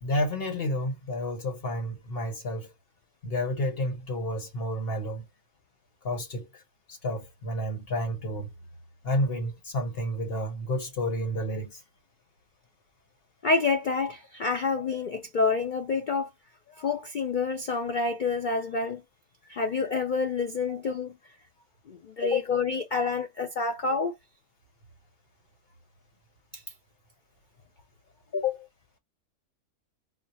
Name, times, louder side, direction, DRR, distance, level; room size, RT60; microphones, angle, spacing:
voice 1, 0.0-2.7 3.2-5.2 6.0-6.6 6.9-8.5 9.0-11.8 20.7-21.0 22.2-22.4 28.3-28.7, left 1 dB, 40° left, 1.3 m, -30 dB
voice 2, 13.4-16.3 16.8-19.0 19.5-21.2 21.9-24.2 26.5-26.6, left 4 dB, 85° left, 0.4 m, -28 dB
4.3 x 2.3 x 2.7 m
omnidirectional pair, 1.6 m